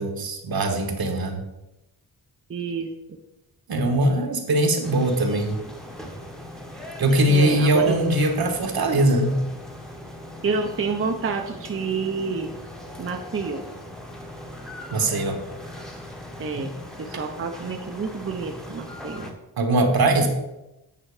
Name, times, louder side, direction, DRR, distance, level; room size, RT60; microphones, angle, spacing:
voice 1, 0.0-1.4 3.7-5.6 7.0-9.4 14.9-15.4 16.5-16.7 19.6-20.3, right 1 dB, 70° right, 4 dB, 1.3 m, -21 dB
voice 2, 2.5-2.9 7.3-7.9 10.4-12.6 13.0-13.6 16.4-16.7 17.0-19.3, right 4 dB, 35° right, 3 dB, 0.6 m, -28 dB
sound 1, 4.8-19.3, left 1 dB, ahead, 1.0 m, -40 dB
8.9 x 5.6 x 4.8 m, 0.95 s
wide cardioid pair, 160°, 38 cm